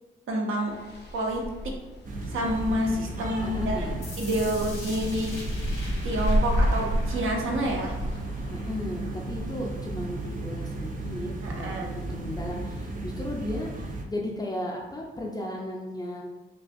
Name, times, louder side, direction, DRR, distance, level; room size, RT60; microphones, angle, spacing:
voice 1, 0.3-0.7 1.1-1.4 2.3-3.9 4.2-5.3 6.0-7.9 11.4-11.9, equal, 75° right, 0 dB, 0.8 m, -28 dB
sound 1, 0.7-13.1, equal, 55° left, 0.7 m, -33 dB
sound 2, 2.1-14.0, right 2 dB, 40° right, 0.5 m, -35 dB
voice 2, 3.4-4.0 8.5-16.2, left 1 dB, 20° left, -2 dB, 0.5 m, -35 dB
sound 3, 4.0-10.0, left 2 dB, 75° left, 1.2 m, -45 dB
5.4 x 2.3 x 2.6 m, 1.1 s
cardioid pair, 125°, 21 cm